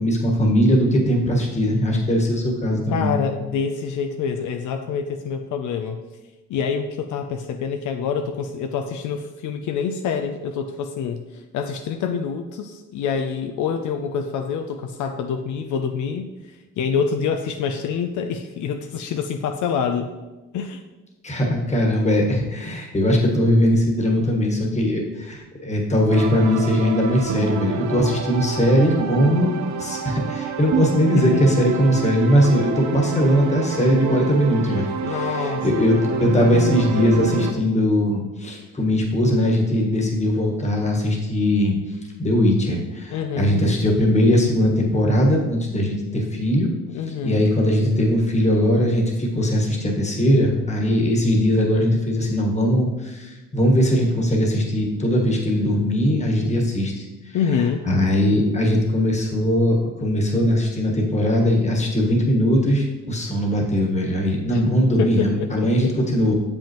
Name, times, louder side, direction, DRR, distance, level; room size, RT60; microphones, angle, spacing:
voice 1, 0.0-3.1 21.2-41.7 42.2-46.7 47.2-57.4 57.8-66.3, equal, 25° left, 0 dB, 1.5 m, -20 dB
voice 2, 2.9-6.0 6.5-20.1 20.5-20.8 31.1-31.4 33.1-33.3 35.0-35.7 35.9-36.5 43.1-43.6 46.9-47.5 57.3-57.8 64.5-64.6 65.0-65.9, left 6 dB, 75° left, 5 dB, 0.5 m, -26 dB
sound 1, 26.1-37.5, right 6 dB, 65° right, 0.7 m, -28 dB
7.1 x 5.4 x 3.0 m, 1.1 s
cardioid pair, 90°, 30 cm